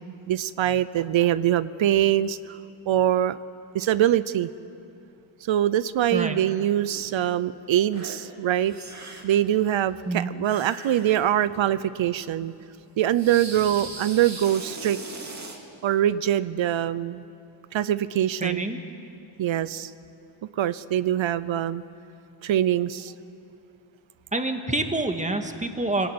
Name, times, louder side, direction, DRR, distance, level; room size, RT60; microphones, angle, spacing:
voice 1, 0.3-2.6 2.9-3.4 3.7-4.5 5.5-8.7 9.2-12.5 13.0-15.0 15.8-17.2 17.7-18.7 19.4-19.9 20.6-21.8 22.4-23.1, right 11 dB, 65° right, 16 dB, 0.8 m, -23 dB
sound 1, 6.9-7.1 7.9-8.2 8.5-9.4 10.4-11.7 12.0-12.1 13.1-15.6, right 3 dB, 35° right, 3.0 m, -40 dB
voice 2, 18.4-18.8 24.3-26.1, right 2 dB, 15° right, 5 dB, 2.0 m, -27 dB
24.5 x 17.5 x 9.6 m, 2.7 s
cardioid pair, 105°, 50 cm